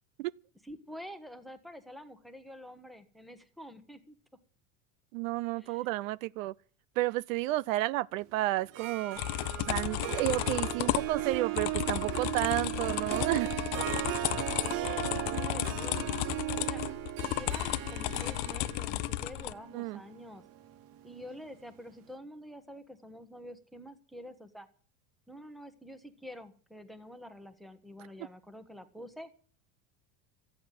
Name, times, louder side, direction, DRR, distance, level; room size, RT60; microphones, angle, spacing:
voice 1, 0.6-4.2 5.6-5.9 14.2-16.8 17.3-20.4 21.0-24.7 25.3-29.3, equal, ahead, 1.1 m, -48 dB
voice 2, 5.1-6.5 7.0-9.2 9.6-13.5 19.7-20.0, right 17 dB, 85° right, 0.7 m, -31 dB
Harp, 8.6-21.5, right 15 dB, 35° right, 0.8 m, -37 dB
sound 1, 9.2-19.5, left 17 dB, 55° left, 0.6 m, -33 dB
14.0 x 9.2 x 9.2 m
cardioid pair, 170°, 39 cm